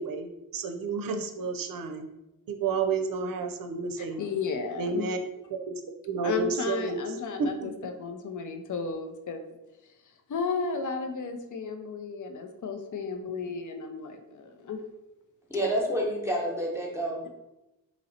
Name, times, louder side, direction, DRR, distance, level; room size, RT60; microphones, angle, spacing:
voice 1, 0.0-2.0 2.5-4.2 4.8-5.2 5.5-5.7 6.0-7.0 7.4-7.7, right 5 dB, 75° right, 5 dB, 0.5 m, -31 dB
voice 2, 4.2-5.1 6.2-9.5 10.3-14.8, left 5 dB, 60° left, 6 dB, 0.5 m, -33 dB
voice 3, 15.5-17.2, equal, 10° right, -1 dB, 0.9 m, -28 dB
2.9 x 2.8 x 4.1 m, 0.96 s
cardioid pair, 45°, 34 cm